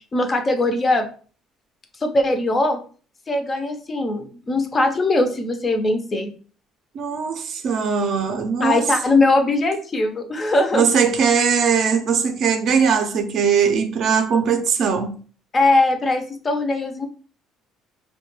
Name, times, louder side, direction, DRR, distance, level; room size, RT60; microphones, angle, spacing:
voice 1, 0.1-1.1 2.0-2.8 3.3-6.3 8.6-10.9 15.5-17.1, left 2 dB, 25° left, 0.4 m, -20 dB
voice 2, 6.9-8.8 10.7-15.2, right 6 dB, 55° right, 0.4 m, -20 dB
2.2 x 2.1 x 2.9 m
cardioid pair, 125°, 0 cm